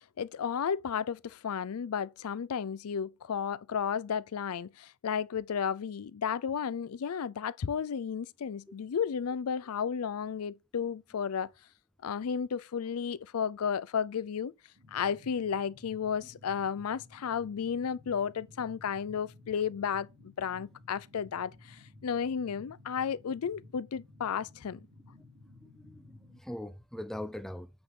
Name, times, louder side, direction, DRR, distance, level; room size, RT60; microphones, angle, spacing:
voice 1, 0.2-11.5 12.0-14.5 14.9-20.1 20.4-21.5 22.0-24.8, left 7 dB, 90° left, 0.4 m, -33 dB
sound 1, 14.7-26.4, left 2 dB, 70° right, 3.1 m, -55 dB
voice 2, 25.1-27.7, left 1 dB, ahead, 0.5 m, -42 dB
8.6 x 3.7 x 5.4 m
head